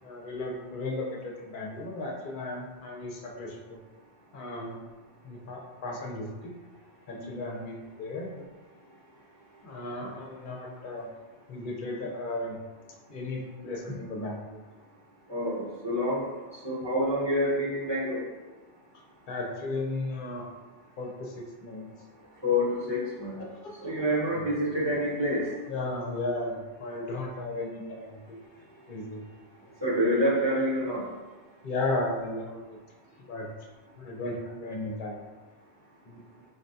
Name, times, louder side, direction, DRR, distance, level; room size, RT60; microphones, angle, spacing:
voice 1, 0.0-3.8 4.3-4.8 5.2-6.5 7.1-8.4 9.6-11.1 11.5-12.6 13.1-14.6 19.3-20.4 21.0-21.9 23.4-23.8 25.7-28.4 28.9-29.2 29.6-29.7 31.6-32.8 33.3-33.5 34.0-35.3 36.1-36.2, left 2 dB, 55° left, -1 dB, 0.7 m, -35 dB
voice 2, 15.3-16.2 16.6-18.2 22.4-23.4 23.8-25.4 29.8-31.1, equal, 25° right, -9 dB, 0.8 m, -27 dB
4.0 x 2.2 x 2.6 m, 1.3 s
omnidirectional pair, 1.1 m